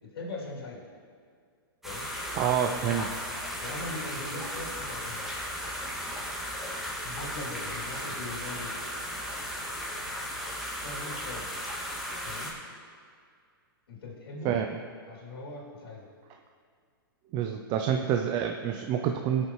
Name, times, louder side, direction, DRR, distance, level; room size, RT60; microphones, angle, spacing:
voice 1, 0.0-0.8 1.8-2.1 2.6-3.1 3.6-5.3 7.0-8.8 10.7-11.7 12.2-12.6 13.9-14.6 15.1-16.1, left 2 dB, 80° left, -4 dB, 2.7 m, -40 dB
sound 1, 1.8-12.5, equal, ahead, 1.9 m, -36 dB
voice 2, 2.3-3.1 14.4-14.7 17.3-19.5, right 9 dB, 35° right, 5 dB, 0.5 m, -27 dB
18.0 x 6.7 x 3.1 m, 2.1 s
hypercardioid pair, 125°, 12 cm